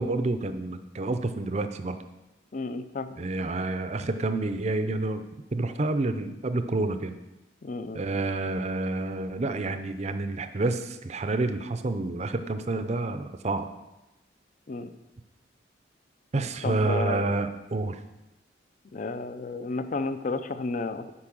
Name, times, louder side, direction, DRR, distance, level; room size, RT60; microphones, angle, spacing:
voice 1, 0.0-2.0 3.2-5.2 5.5-7.2 7.9-13.7 16.3-18.0, right 2 dB, 35° right, 9 dB, 0.5 m, -29 dB
voice 2, 2.5-3.2 7.6-8.0 14.7-14.9 16.6-17.3 18.9-21.1, left 3 dB, 45° left, 11 dB, 0.5 m, -32 dB
8.6 x 5.1 x 6.2 m, 1.0 s
head